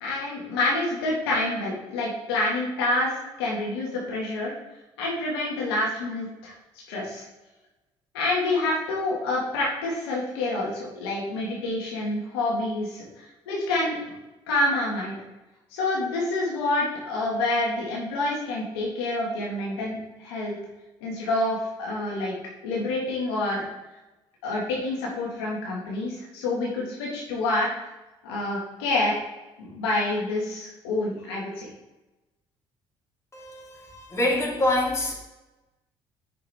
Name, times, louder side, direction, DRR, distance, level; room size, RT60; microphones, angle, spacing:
voice 1, 0.0-3.1 3.4-4.5 5.0-6.5 6.9-7.2 8.1-13.1 13.5-14.0 14.5-15.2 15.7-20.6 21.0-22.3 22.6-23.7 24.4-27.7 28.2-29.1 29.6-31.7, left 2 dB, 90° left, -4 dB, 1.7 m, -27 dB
voice 2, 33.3-35.1, left 1 dB, 25° left, -3 dB, 2.7 m, -26 dB
7.5 x 6.0 x 3.4 m, 1.0 s
hypercardioid pair, 65°, 13 cm